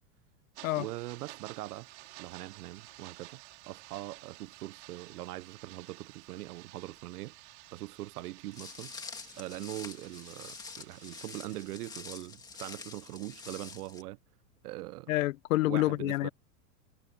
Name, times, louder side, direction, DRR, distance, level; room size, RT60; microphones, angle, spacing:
sound 1, 0.5-11.7, right 22 dB, 45° right, 4.5 m, -53 dB
voice 1, 0.8-1.9 2.2-3.4 3.7-7.3 7.7-8.9 9.4-14.2 14.6-15.1 15.6-16.3, right 17 dB, 70° right, 0.6 m, -42 dB
Walk footsteps, 8.5-14.0, left 4 dB, 10° left, 1.9 m, -46 dB
voice 2, 15.1-16.3, left 17 dB, 55° left, 0.7 m, -28 dB
supercardioid pair, 180°, 48 cm